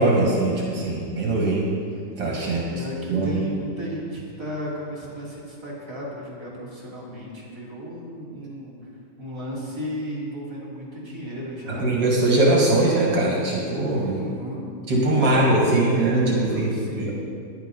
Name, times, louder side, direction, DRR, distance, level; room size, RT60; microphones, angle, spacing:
voice 1, 0.0-1.7 2.2-2.8 3.1-3.4 11.7-14.2 14.9-17.1, right 2 dB, 70° right, -3 dB, 2.5 m, -21 dB
voice 2, 2.4-8.7 9.2-11.9 14.0-14.7 15.1-17.1, equal, 15° right, -7 dB, 3.3 m, -35 dB
12.5 x 10.5 x 5.4 m, 2.3 s
omnidirectional pair, 2.0 m